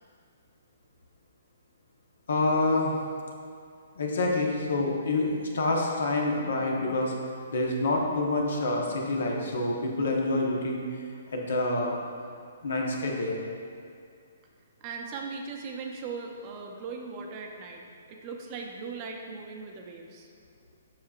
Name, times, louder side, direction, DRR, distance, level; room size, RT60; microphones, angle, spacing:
voice 1, 2.3-2.9 4.0-7.1 7.5-10.8 11.3-12.0 12.6-13.4, left 2 dB, 75° left, -1 dB, 1.1 m, -27 dB
voice 2, 14.8-20.3, right 4 dB, 35° right, 1 dB, 0.6 m, -39 dB
7.4 x 5.7 x 2.5 m, 2.3 s
hypercardioid pair, 140°, 0 cm